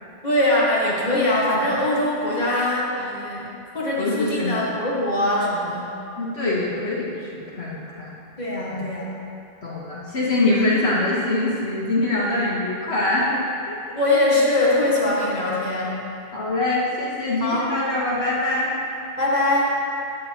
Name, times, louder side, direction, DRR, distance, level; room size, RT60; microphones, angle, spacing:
voice 1, 0.2-6.0 8.4-9.1 14.0-16.0 17.4-17.6 19.2-19.7, left 1 dB, 45° left, -6 dB, 1.8 m, -22 dB
voice 2, 4.0-4.7 6.2-8.1 8.7-8.8 9.6-13.8 16.3-18.7, left 2 dB, 85° left, -7 dB, 1.6 m, -24 dB
12.5 x 8.3 x 2.9 m, 2.7 s
omnidirectional pair, 1.0 m